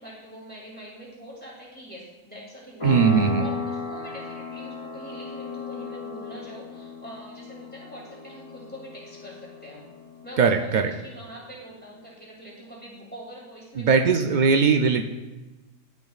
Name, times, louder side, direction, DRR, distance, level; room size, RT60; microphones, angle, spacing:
voice 1, 0.0-9.8 10.2-14.8, equal, 5° left, -5 dB, 2.5 m, -44 dB
sound 1, 2.8-11.1, left 4 dB, 25° left, 1.8 m, -35 dB
voice 2, 2.8-3.5 10.4-10.9 13.8-15.0, right 5 dB, 85° right, 4 dB, 0.4 m, -20 dB
11.5 x 7.0 x 2.4 m, 1.1 s
omnidirectional pair, 1.3 m